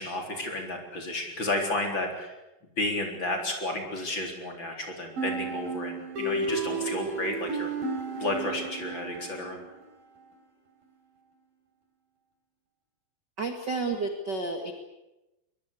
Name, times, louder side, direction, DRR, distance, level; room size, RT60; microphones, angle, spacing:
voice 1, 0.0-2.3 2.8-7.7 8.2-9.6, left 1 dB, 30° left, 2 dB, 4.4 m, -32 dB
sound 1, 5.2-9.8, right 3 dB, 70° right, 5.1 m, -33 dB
voice 2, 13.4-14.7, right 3 dB, 40° right, 4 dB, 1.9 m, -31 dB
22.5 x 22.5 x 8.4 m, 0.98 s
omnidirectional pair, 4.3 m